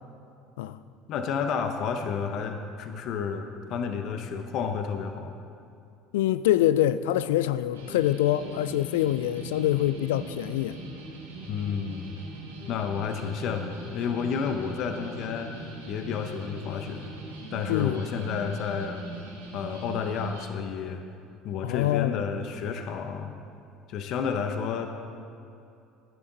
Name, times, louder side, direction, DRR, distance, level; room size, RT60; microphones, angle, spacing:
voice 1, 1.1-5.3 11.5-12.2 12.7-15.5 15.9-17.1 17.5-19.0 19.5-21.0 21.4-23.3 23.9-24.9, left 6 dB, 60° left, 6 dB, 0.9 m, -31 dB
voice 2, 6.1-10.8 17.7-18.0 21.6-22.2, left 13 dB, 75° left, 14 dB, 0.3 m, -25 dB
sound 1, 7.7-20.5, right 2 dB, 90° right, 1.9 m, -41 dB
15.0 x 11.0 x 4.0 m, 2.6 s
hypercardioid pair, 65°, 0 cm